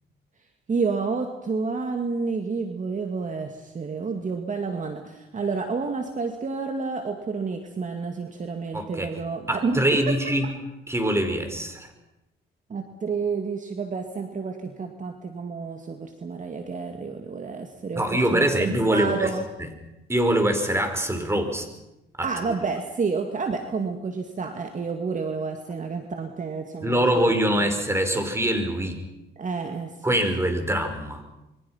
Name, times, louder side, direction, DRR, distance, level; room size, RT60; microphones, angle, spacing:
voice 1, 0.7-10.0 12.7-19.4 22.2-27.1 27.6-27.7 29.4-29.9, right 4 dB, 40° right, 5 dB, 2.4 m, -30 dB
voice 2, 8.7-9.1 9.5-10.5 10.9-11.9 17.9-19.3 19.6-19.7 20.1-21.7 22.2-22.3 26.8-29.0 30.0-31.2, right 1 dB, 15° right, 6 dB, 5.1 m, -23 dB
27.0 x 24.0 x 5.9 m, 0.94 s
cardioid pair, 90°, 20 cm